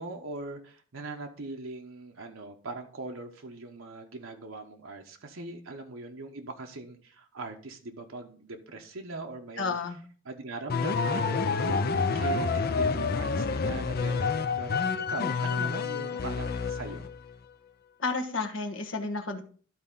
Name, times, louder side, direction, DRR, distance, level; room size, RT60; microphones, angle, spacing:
voice 1, 0.0-9.8 10.2-17.1, right 2 dB, 85° right, 3 dB, 1.0 m, -41 dB
voice 2, 9.6-10.0 18.0-19.4, left 3 dB, 65° left, 5 dB, 1.3 m, -31 dB
sound 1, 10.7-17.2, left 4 dB, 50° left, 0.6 m, -28 dB
12.5 x 4.2 x 3.7 m, 0.41 s
head